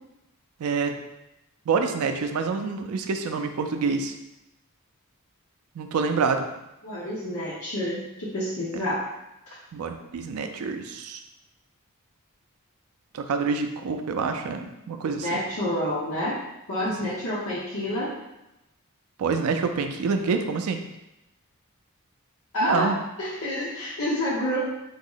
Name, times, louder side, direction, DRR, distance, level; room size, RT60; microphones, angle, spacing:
voice 1, 0.6-0.9 1.7-4.1 5.8-6.4 9.7-11.2 13.1-15.4 16.8-17.1 19.2-20.8 22.6-22.9, right 5 dB, 75° right, 6 dB, 0.4 m, -27 dB
voice 2, 6.8-9.0 15.2-16.4 16.7-18.1 22.5-22.9 23.2-24.6, left 1 dB, 70° left, -8 dB, 0.8 m, -28 dB
3.6 x 2.0 x 3.8 m, 0.92 s
head